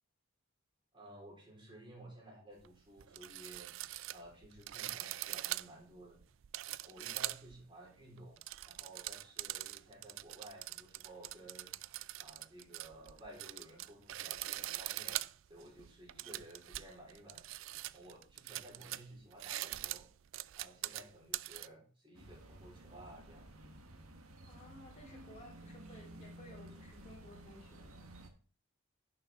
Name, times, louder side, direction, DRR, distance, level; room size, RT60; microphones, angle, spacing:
voice 1, 0.9-3.7 4.1-6.2 6.8-8.4 8.7-11.7 12.2-15.2 15.5-17.5 17.9-20.1 20.6-23.5, right 1 dB, 25° right, -3 dB, 4.4 m, -55 dB
sound 1, 2.6-2.7 3.0-7.6 8.2-21.7, right 16 dB, 65° right, 0.3 m, -43 dB
sound 2, 22.1-28.3, right 1 dB, 85° right, 1.6 m, -54 dB
voice 2, 24.4-28.1, equal, 30° left, -1 dB, 3.1 m, -56 dB
11.0 x 6.9 x 3.7 m, 0.38 s
head